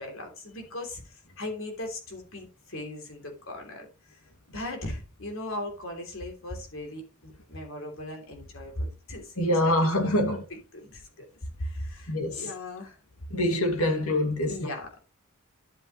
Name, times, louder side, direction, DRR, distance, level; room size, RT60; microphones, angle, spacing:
voice 1, 0.0-4.2 4.5-10.4 10.7-11.3 11.6-13.0 14.4-15.0, left 1 dB, 70° left, 3.0 m, -38 dB
voice 2, 9.4-10.4 12.1-12.5 13.3-14.5, left 1 dB, 85° left, 2.3 m, -25 dB
11.0 x 7.3 x 3.1 m
head